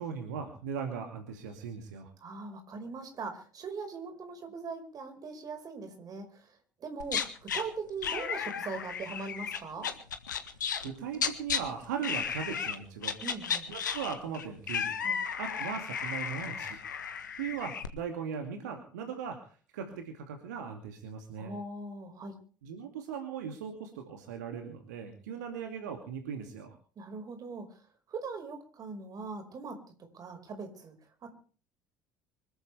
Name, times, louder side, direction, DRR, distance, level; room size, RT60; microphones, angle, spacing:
voice 1, 0.0-2.1 10.4-13.1 13.7-14.9 15.4-16.8 17.4-21.5 22.6-26.7, right 7 dB, 70° right, 5 dB, 2.5 m, -39 dB
voice 2, 2.2-9.9 13.2-13.7 15.0-15.2 21.4-22.4 27.0-27.7 28.1-29.8 30.1-31.0 31.2-31.3, right 4 dB, 40° right, 6 dB, 5.1 m, -41 dB
sound 1, 7.0-7.6 8.0-10.9 11.1-11.6 12.0-12.8 13.0-17.9, left 7 dB, 75° left, 1.6 m, -34 dB
25.0 x 14.5 x 3.4 m, 0.40 s
figure-of-eight pair, 60°, 10 cm